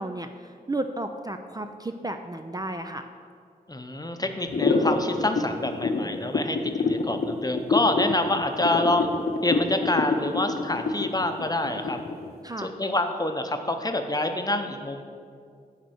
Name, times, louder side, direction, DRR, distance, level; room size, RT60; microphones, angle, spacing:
voice 1, 0.0-3.1 12.4-12.7, right 1 dB, 25° right, 6 dB, 0.4 m, -33 dB
voice 2, 3.7-9.1 9.4-12.0 12.6-15.0, left 2 dB, 25° left, 6 dB, 0.8 m, -27 dB
sound 1, 4.5-12.3, left 4 dB, 75° left, 0.8 m, -26 dB
10.5 x 4.0 x 6.4 m, 2.2 s
cardioid pair, 55°, 17 cm